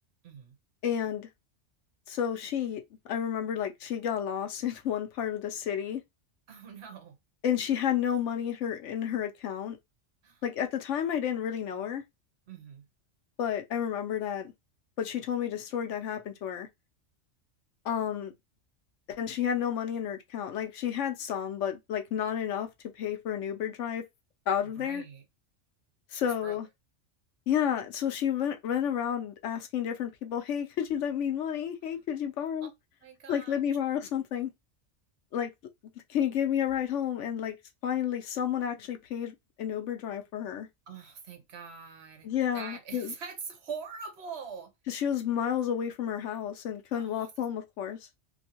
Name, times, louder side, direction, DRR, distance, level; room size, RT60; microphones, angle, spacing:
voice 1, 0.2-0.6 6.5-7.2 10.2-10.4 12.5-12.9 24.6-25.2 26.1-26.6 33.0-33.6 40.9-44.7 46.9-47.3, right 6 dB, 65° right, 1.1 m, -43 dB
voice 2, 0.8-1.3 2.1-2.8 3.1-6.0 7.4-9.8 10.4-12.0 13.4-14.5 15.0-16.7 17.8-18.3 19.1-22.7 23.0-24.0 24.5-25.0 26.1-26.7 27.5-32.7 33.3-34.5 35.3-35.5 36.1-37.5 37.8-40.7 42.2-43.1 44.9-48.0, left 9 dB, 80° left, 1.0 m, -31 dB
2.8 x 2.6 x 2.8 m
omnidirectional pair, 1.2 m